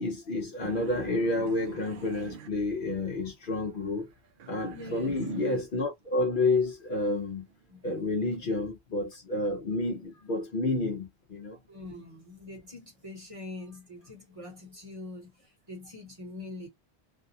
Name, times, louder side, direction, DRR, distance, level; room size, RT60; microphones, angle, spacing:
voice 1, 0.0-4.1 4.5-7.5 7.8-11.6, left 2 dB, 55° left, 0.8 m, -30 dB
sound 1, 0.6-3.3 3.6-5.9 6.3-8.4, right 7 dB, 60° right, 0.6 m, -45 dB
voice 2, 4.7-5.3 7.7-8.7 11.6-16.7, left 2 dB, 30° right, 1.0 m, -44 dB
2.6 x 2.2 x 2.6 m
omnidirectional pair, 1.1 m